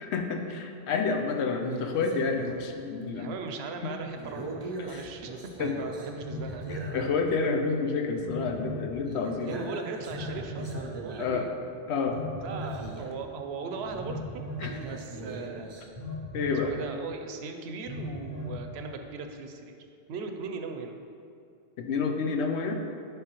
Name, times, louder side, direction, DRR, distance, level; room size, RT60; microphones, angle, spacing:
voice 1, 0.1-3.3 3.8-4.0 4.8-5.0 5.6-5.7 6.9-9.7 11.2-11.4 11.9-12.2 14.6-14.7 16.3-16.7 21.8-22.7, left 4 dB, 90° left, 4 dB, 0.9 m, -29 dB
sound 1, 1.6-2.6 3.2-3.4 4.2-7.4 7.7-7.9 8.2-8.3 8.5-8.8 9.1-11.7 12.2-12.3 12.5-13.3 13.8-15.9, right 2 dB, 35° right, 0.4 m, -40 dB
voice 2, 3.1-5.3 5.6-6.7 9.4-11.5 12.4-14.4 14.8-15.7 16.5-19.8 20.1-21.0, right 4 dB, 75° right, 5 dB, 0.8 m, -38 dB
Telephone, 4.9-5.0 6.2-6.9 8.2-8.9 10.1-10.8 12.0-12.8 14.0-14.7 15.9-16.6 17.8-18.6, left 1 dB, 50° left, 1.8 m, -37 dB
10.0 x 3.4 x 3.0 m, 2.6 s
omnidirectional pair, 1.1 m